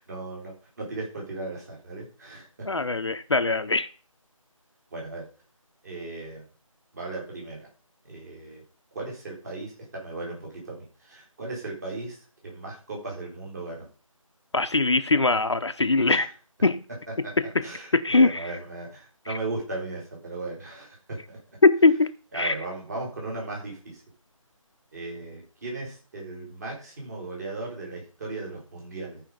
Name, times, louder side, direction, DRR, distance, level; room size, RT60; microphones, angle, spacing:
voice 1, 0.0-2.8 4.9-5.3 5.8-6.4 6.9-7.7 8.1-8.6 8.9-12.2 12.4-13.9 16.1-16.3 17.1-17.3 17.6-21.4 22.3-24.0 24.9-29.2, right 2 dB, 30° right, 4.1 m, -37 dB
voice 2, 2.7-3.9 14.5-16.3 16.6-16.8 17.4-17.7 17.9-18.4 21.6-22.1 22.4-22.5, left 3 dB, 55° left, 0.6 m, -21 dB
14.5 x 5.0 x 5.2 m
figure-of-eight pair, 160°, 18 cm